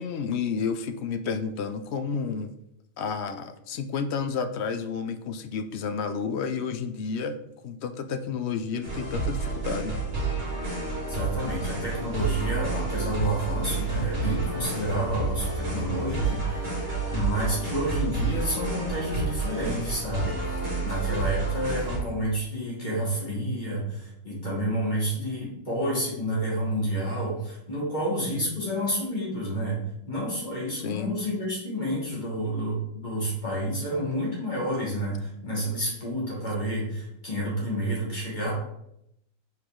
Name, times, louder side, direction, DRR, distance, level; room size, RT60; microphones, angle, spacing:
voice 1, 0.0-2.5 3.0-7.4 7.6-10.0 30.8-31.2, left 5 dB, 65° left, 9 dB, 0.7 m, -31 dB
sound 1, 8.8-22.0, right 3 dB, 45° right, 2.4 m, -30 dB
voice 2, 11.1-16.8 17.1-29.8 30.1-38.5, equal, 30° left, -6 dB, 2.8 m, -29 dB
5.9 x 4.8 x 3.7 m, 0.79 s
omnidirectional pair, 1.5 m